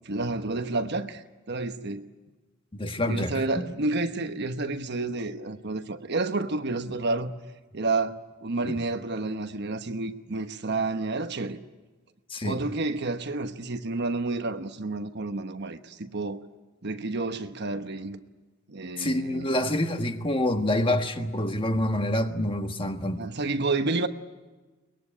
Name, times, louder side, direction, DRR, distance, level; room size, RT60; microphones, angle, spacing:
voice 1, 0.0-1.2 1.5-2.0 3.1-7.3 7.7-11.6 12.4-16.4 16.8-18.2 18.7-19.5 23.2-24.1, right 3 dB, 55° right, 1.2 m, -30 dB
voice 2, 2.7-3.6 12.3-12.6 19.0-23.2, left 1 dB, 25° left, 1.5 m, -27 dB
23.0 x 20.5 x 10.0 m
head